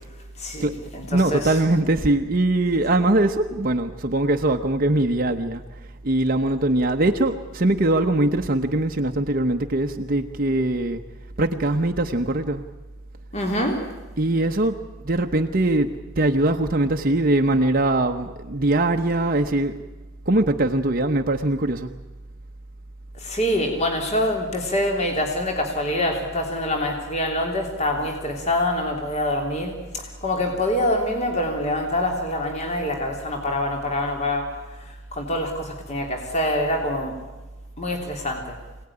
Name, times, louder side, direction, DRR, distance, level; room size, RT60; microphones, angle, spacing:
voice 1, 0.4-1.6 13.3-13.8 23.1-37.2 37.8-38.6, left 1 dB, 30° left, 2 dB, 3.2 m, -25 dB
voice 2, 1.1-5.6 6.0-11.0 11.4-12.6 14.2-14.7 15.1-19.7 20.3-21.9, right 2 dB, 45° right, 4 dB, 1.0 m, -21 dB
25.5 x 18.0 x 9.9 m, 1.2 s
head